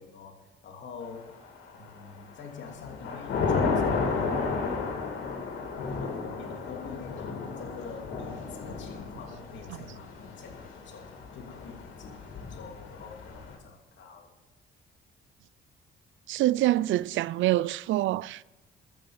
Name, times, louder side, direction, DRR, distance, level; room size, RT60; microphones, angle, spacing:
voice 1, 0.0-1.4 1.7-4.6 5.8-14.3, left 5 dB, 65° left, 2.9 m, -46 dB
Thunder / Rain, 1.4-2.0 2.4-13.5, left 4 dB, 80° left, 3.3 m, -33 dB
voice 2, 16.3-18.4, right 15 dB, 75° right, 0.4 m, -25 dB
12.5 x 8.5 x 7.3 m
cardioid pair, 90°, 20 cm